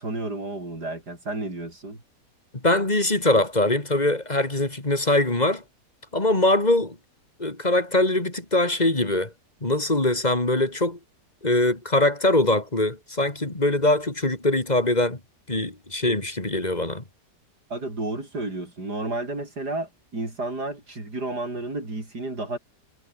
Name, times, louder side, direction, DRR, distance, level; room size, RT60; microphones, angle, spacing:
voice 1, 0.0-2.0 17.7-22.6, right 2 dB, 65° right, 7.2 m, -31 dB
voice 2, 2.6-5.6 6.1-7.0 7.4-9.3 9.6-11.0 11.4-15.2 15.5-17.0, left 2 dB, 25° left, 2.9 m, -22 dB
omnidirectional pair, 1.9 m